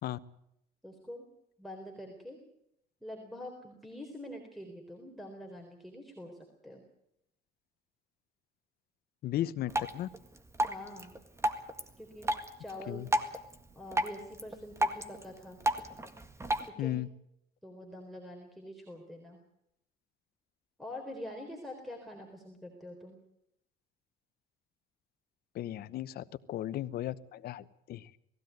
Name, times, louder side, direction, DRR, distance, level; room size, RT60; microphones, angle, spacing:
voice 1, 0.8-1.3 1.6-2.4 3.0-6.8 10.7-11.2 12.0-12.3 12.6-13.1 13.7-15.6 16.6-17.0 17.6-19.4 20.8-23.2, left 1 dB, ahead, 3 dB, 4.0 m, -45 dB
voice 2, 9.2-10.1 12.9-13.1 16.8-17.1 25.5-28.2, left 13 dB, 65° left, 15 dB, 1.0 m, -36 dB
Drip, 9.7-16.7, right 1 dB, 15° right, 1.8 m, -35 dB
20.0 x 16.0 x 9.3 m, 0.77 s
cardioid pair, 110°, 17 cm